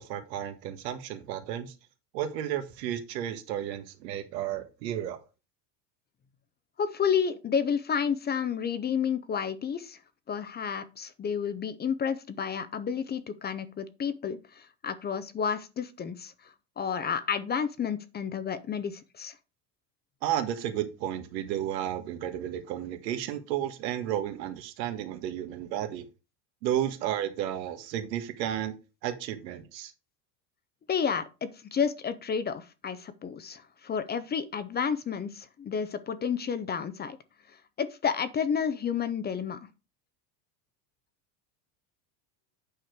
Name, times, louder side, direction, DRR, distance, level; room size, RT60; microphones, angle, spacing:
voice 1, 0.0-1.7 2.1-5.2 20.2-26.0 26.6-28.7 29.0-29.9, right 11 dB, 90° right, 8 dB, 1.6 m, -32 dB
voice 2, 6.8-10.0 10.3-19.4 30.9-37.2 37.8-39.6, left 7 dB, 20° left, 13 dB, 0.5 m, -31 dB
8.8 x 5.0 x 4.6 m, 0.30 s
supercardioid pair, 120°, 49 cm